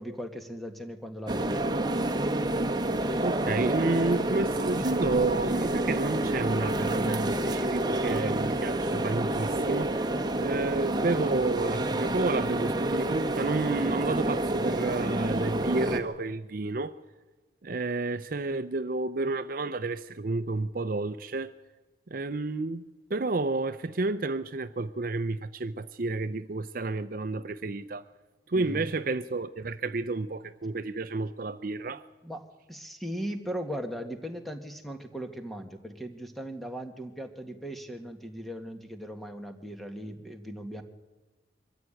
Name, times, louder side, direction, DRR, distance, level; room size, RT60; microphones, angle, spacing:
voice 1, 0.0-1.6 28.5-28.8 32.2-40.8, equal, ahead, 1.8 m, -38 dB
sound 1, 1.3-16.0, right 1 dB, 25° right, 1.5 m, -28 dB
voice 2, 3.2-10.1 10.4-16.9 17.6-21.5 22.1-22.8 23.1-28.0 28.5-32.0, right 3 dB, 50° right, 0.6 m, -30 dB
23.5 x 14.5 x 9.1 m
head